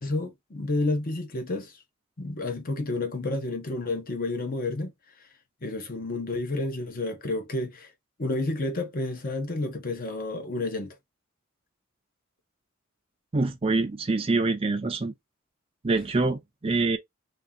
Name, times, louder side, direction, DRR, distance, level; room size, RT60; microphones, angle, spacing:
voice 1, 0.0-1.7 2.2-4.9 5.6-7.9 8.2-10.9, left 2 dB, 45° left, 0.9 m, -30 dB
voice 2, 13.3-15.1 15.8-17.0, right 3 dB, 30° right, 0.4 m, -25 dB
2.8 x 2.7 x 3.6 m
head